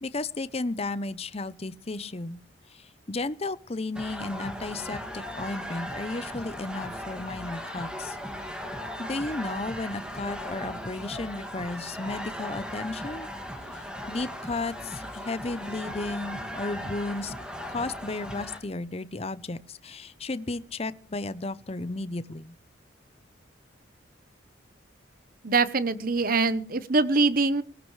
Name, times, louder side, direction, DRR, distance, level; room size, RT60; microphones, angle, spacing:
voice 1, 0.0-2.4 2.7-8.2 9.0-13.3 13.7-17.3 17.7-22.5, left 2 dB, 30° left, 15 dB, 0.6 m, -34 dB
sound 1, 3.9-18.6, equal, 5° right, 2.1 m, -37 dB
voice 2, 25.4-27.6, right 3 dB, 45° right, 14 dB, 0.9 m, -23 dB
18.5 x 18.0 x 3.2 m, 0.39 s
head